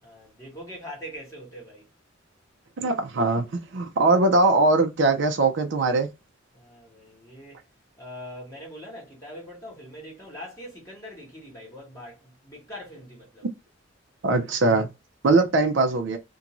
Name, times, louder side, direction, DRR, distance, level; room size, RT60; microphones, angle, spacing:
voice 1, 0.0-1.9 6.5-7.6 8.0-13.5, equal, 15° left, 1.1 m, -42 dB
voice 2, 2.8-6.1 14.2-14.9 15.2-16.2, right 3 dB, 60° right, 0.5 m, -21 dB
2.5 x 2.2 x 2.9 m
head